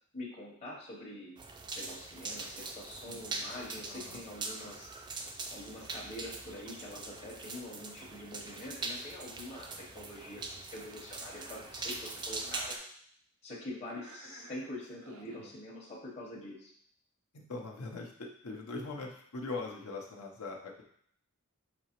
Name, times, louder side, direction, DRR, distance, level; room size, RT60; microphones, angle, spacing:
voice 1, 0.1-1.4 1.7-4.9 5.5-12.8 13.4-16.7, left 1 dB, 30° left, -6 dB, 0.8 m, -45 dB
sound 1, 1.4-12.8, right 3 dB, 20° right, 0.3 m, -42 dB
voice 2, 3.9-4.2 15.4-15.5 17.3-20.8, left 3 dB, 70° left, -1 dB, 0.7 m, -41 dB
Cough, 11.2-11.8 12.2-12.7 13.8-15.5, right 2 dB, 85° right, 0.6 m, -55 dB
6.0 x 2.9 x 2.9 m, 0.65 s
head